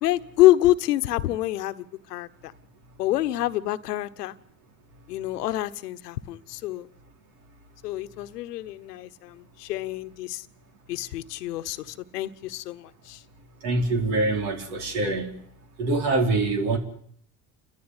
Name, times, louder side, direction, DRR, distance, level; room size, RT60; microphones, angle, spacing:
voice 1, 0.0-2.5 3.0-4.3 5.1-6.9 7.8-10.4 10.9-13.2, left 15 dB, 90° left, 12 dB, 1.2 m, -26 dB
voice 2, 13.6-15.4 15.8-16.8, right 2 dB, 75° right, 4 dB, 5.0 m, -24 dB
29.5 x 14.5 x 9.8 m, 0.67 s
hypercardioid pair, 90°, 46 cm